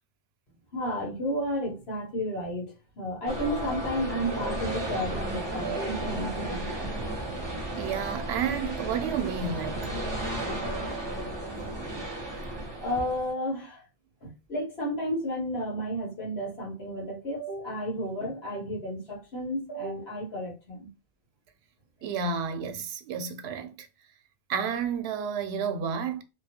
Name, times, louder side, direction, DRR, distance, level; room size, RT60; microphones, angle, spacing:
voice 1, 0.7-6.7 12.8-13.9 14.2-20.9, equal, 80° left, 1.5 m, -32 dB
sound 1, 3.3-13.3, right 1 dB, 30° right, 0.8 m, -33 dB
voice 2, 7.8-9.9 22.0-23.9 24.5-26.2, right 6 dB, 85° right, 0.8 m, -31 dB
2.9 x 2.3 x 2.8 m
omnidirectional pair, 1.0 m